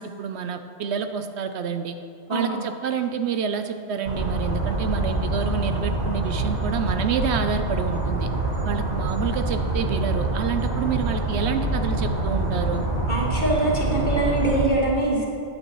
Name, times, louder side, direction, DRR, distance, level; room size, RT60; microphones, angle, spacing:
voice 1, 0.0-2.0 2.3-8.3 8.6-12.9, right 6 dB, 75° right, 8 dB, 0.9 m, -28 dB
voice 2, 2.3-2.6 13.1-15.2, right 2 dB, 45° left, -3 dB, 1.7 m, -23 dB
sound 1, 4.0-14.7, right 2 dB, 40° right, 1.4 m, -25 dB
13.0 x 9.7 x 3.1 m, 2.3 s
omnidirectional pair, 1.1 m